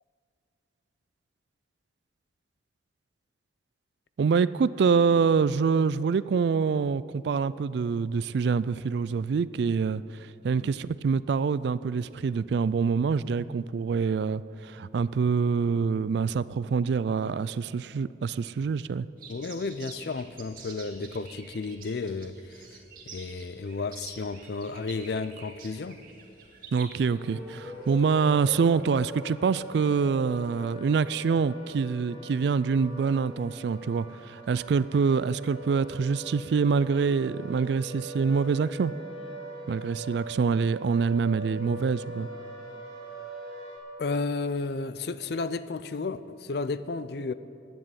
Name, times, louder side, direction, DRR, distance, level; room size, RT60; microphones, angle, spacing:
voice 1, 4.2-19.1 26.7-38.9 39.7-42.3, right 5 dB, 65° right, 0.3 m, -26 dB
sound 1, 19.2-27.9, right 5 dB, 45° right, 2.2 m, -48 dB
voice 2, 19.3-22.8 23.1-26.0 44.0-47.3, left 3 dB, 60° left, 0.4 m, -33 dB
sound 2, 27.1-43.8, right 1 dB, 30° left, 3.0 m, -41 dB
11.0 x 8.9 x 9.8 m
head